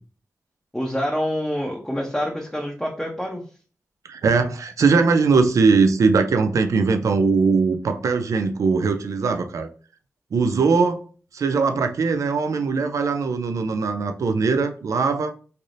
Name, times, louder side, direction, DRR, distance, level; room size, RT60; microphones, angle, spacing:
voice 1, 0.7-3.4, equal, 5° left, -1 dB, 0.6 m, -26 dB
voice 2, 4.1-9.7 10.3-11.0 11.3-15.3, right 4 dB, 75° right, 7 dB, 0.4 m, -20 dB
3.3 x 2.6 x 2.5 m, 0.40 s
cardioid pair, 60°, 5 cm